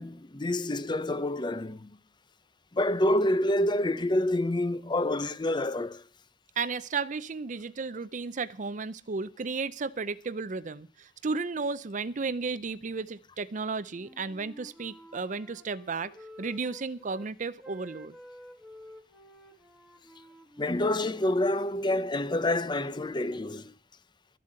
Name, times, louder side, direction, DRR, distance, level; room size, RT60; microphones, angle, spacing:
voice 1, 0.0-1.9 2.7-6.0 20.6-23.7, left 1 dB, 25° left, 0.6 m, -27 dB
voice 2, 6.6-16.1 16.4-18.1, right 4 dB, 45° right, 0.6 m, -33 dB
Wind instrument woodwind instrument, 13.9-17.3 17.6-21.5, equal, ahead, 1.5 m, -51 dB
13.0 x 7.5 x 7.7 m
head